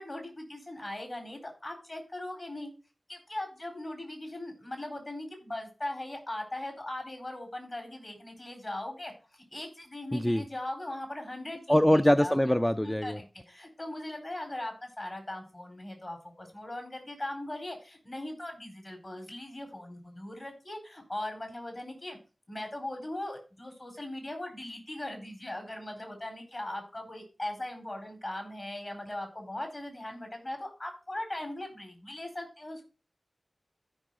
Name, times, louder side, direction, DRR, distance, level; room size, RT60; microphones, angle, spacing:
voice 1, 0.0-2.7 3.1-9.1 9.5-12.4 12.8-22.2 22.5-32.8, left 1 dB, 50° left, 4.2 m, -39 dB
voice 2, 10.1-10.4 11.7-13.2, equal, 10° left, 0.4 m, -23 dB
14.0 x 5.5 x 3.7 m
wide cardioid pair, 55°, 0 cm